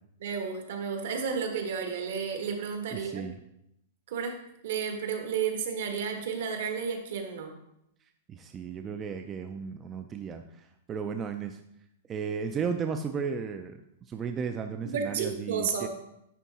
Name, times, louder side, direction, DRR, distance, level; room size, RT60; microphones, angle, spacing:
voice 1, 0.2-3.2 4.1-4.4 4.6-7.5 14.8-15.9, right 6 dB, 60° right, 4 dB, 1.3 m, -32 dB
voice 2, 2.9-3.4 8.3-11.6 12.1-15.9, right 6 dB, 20° right, 6 dB, 0.3 m, -35 dB
10.0 x 3.6 x 4.1 m, 0.79 s
supercardioid pair, 160°, 0 cm